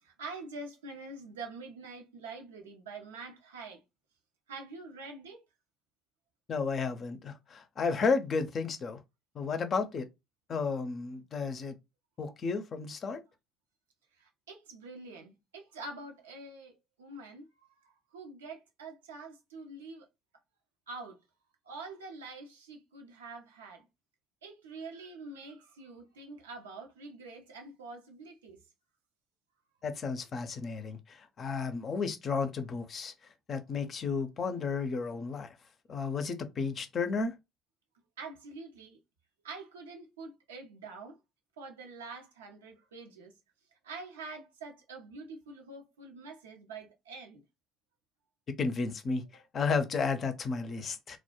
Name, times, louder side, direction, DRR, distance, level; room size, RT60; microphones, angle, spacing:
voice 1, 0.0-3.8 4.5-5.4 14.2-20.1 20.9-21.2 21.6-23.9 24.4-28.6 38.2-39.0 39.4-41.2 41.6-43.3 43.8-47.4 49.3-49.4, right 3 dB, 85° right, 0.5 m, -46 dB
voice 2, 6.5-9.0 9.3-10.1 10.5-11.8 12.2-13.2 29.8-33.1 33.5-35.5 35.9-37.3 48.6-49.2 49.5-51.2, left 4 dB, 45° left, 0.5 m, -32 dB
2.2 x 2.0 x 2.9 m
hypercardioid pair, 55°, 0 cm